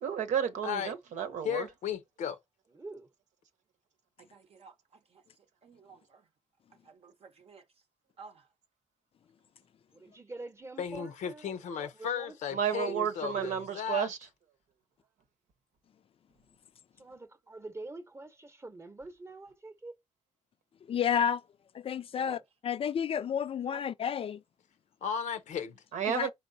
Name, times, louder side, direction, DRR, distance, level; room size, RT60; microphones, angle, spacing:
voice 1, 0.0-1.7 12.5-14.2 25.9-26.3, right 8 dB, 90° right, 0.9 m, -31 dB
voice 2, 0.6-0.9 1.4-2.4 10.8-14.1 25.0-25.8, left 8 dB, 90° left, 0.7 m, -35 dB
voice 3, 2.7-3.1 9.9-12.4 12.7-13.5 17.0-19.9 22.1-22.4 23.7-23.8, right 2 dB, 20° right, 0.8 m, -45 dB
voice 4, 4.2-6.3 6.8-7.7 8.2-8.5, right 5 dB, 55° right, 0.6 m, -55 dB
voice 5, 20.9-21.4 21.7-24.4 26.1-26.3, left 8 dB, 50° left, 0.4 m, -31 dB
4.4 x 4.1 x 2.7 m
cardioid pair, 90°, 12 cm